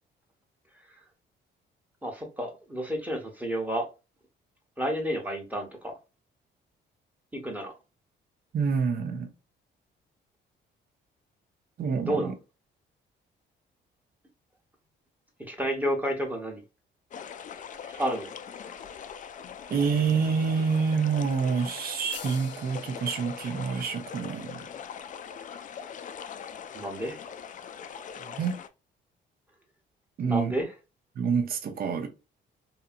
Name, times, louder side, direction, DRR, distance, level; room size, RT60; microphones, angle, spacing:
voice 1, 2.0-3.9 4.8-5.9 7.3-7.7 12.0-12.3 15.5-16.6 18.0-18.3 26.7-27.2 30.2-30.7, equal, 10° right, 0.9 m, -30 dB
voice 2, 8.5-9.3 11.8-12.3 17.8-18.0 19.7-24.7 28.2-28.6 30.2-30.5 31.2-32.1, right 5 dB, 50° right, 0.6 m, -27 dB
sound 1, 17.1-28.7, left 7 dB, 40° left, 0.4 m, -42 dB
sound 2, 22.1-25.7, left 6 dB, 65° left, 0.7 m, -49 dB
2.7 x 2.6 x 2.4 m
cardioid pair, 90°, 20 cm